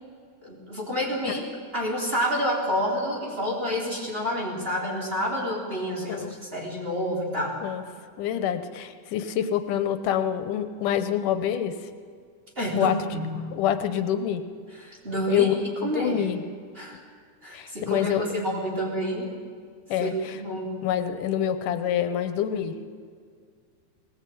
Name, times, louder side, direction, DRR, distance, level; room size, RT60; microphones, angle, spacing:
voice 1, 0.4-1.4 1.7-7.6 12.6-13.6 14.8-15.5 15.8-16.3 16.7-17.0 17.4-19.3 20.0-20.8, equal, 15° right, -3 dB, 4.0 m, -29 dB
voice 2, 8.2-11.7 12.8-12.9 13.5-14.4 15.3-16.4 17.5-18.2 19.9-20.1 20.8-22.9, left 10 dB, 85° left, 9 dB, 2.6 m, -26 dB
19.5 x 19.5 x 8.6 m, 2.1 s
omnidirectional pair, 3.6 m